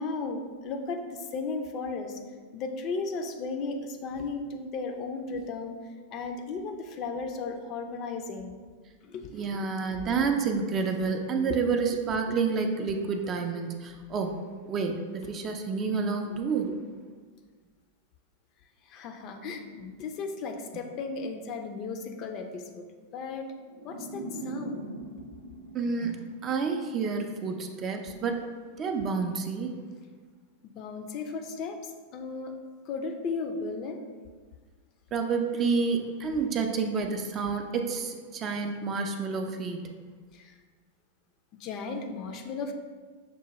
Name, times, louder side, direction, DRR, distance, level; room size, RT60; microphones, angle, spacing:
voice 1, 0.0-2.2 2.5-5.7 6.1-8.6 9.0-9.5 9.9-10.1 15.2-15.3 16.3-16.4 16.7-16.8 18.9-22.8 23.1-23.5 23.8-24.8 30.6-32.6 32.9-34.0 37.5-37.6 40.3-40.5 41.6-42.7, left 4 dB, 40° left, 4 dB, 0.4 m, -35 dB
voice 2, 9.3-14.4 14.7-15.0 15.3-16.7 25.7-28.4 28.8-29.7 35.1-39.8, right 5 dB, 30° right, 4 dB, 0.4 m, -29 dB
sound 1, 23.7-26.8, right 2 dB, 85° right, 0.6 m, -41 dB
5.9 x 2.2 x 3.0 m, 1.5 s
figure-of-eight pair, 95°, 0 cm